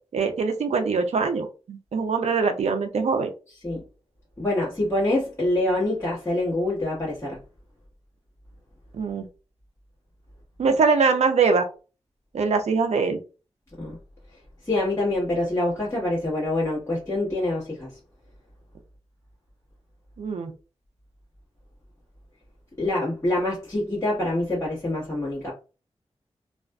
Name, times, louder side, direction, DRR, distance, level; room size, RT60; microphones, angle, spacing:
voice 1, 0.1-3.3 8.9-9.3 10.6-11.7 12.3-13.2 20.2-20.5, right 4 dB, 85° right, 0.4 m, -23 dB
voice 2, 4.4-7.4 13.8-14.0 14.6-17.9 22.8-25.5, left 1 dB, 25° left, 1.2 m, -25 dB
2.4 x 2.4 x 2.2 m
wide cardioid pair, 80°, 11 cm